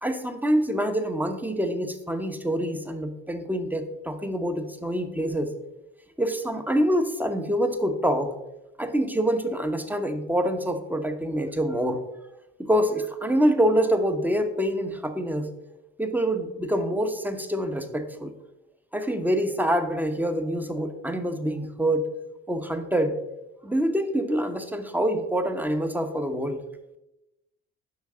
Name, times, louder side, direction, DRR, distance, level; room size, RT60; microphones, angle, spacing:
voice 1, 0.0-5.5 6.2-8.3 8.8-12.0 12.6-15.5 16.0-18.3 18.9-22.1 22.5-23.2 23.6-26.6, equal, 5° right, 8 dB, 0.9 m, -26 dB
7.1 x 5.5 x 3.8 m, 0.93 s
hypercardioid pair, 50°, 38 cm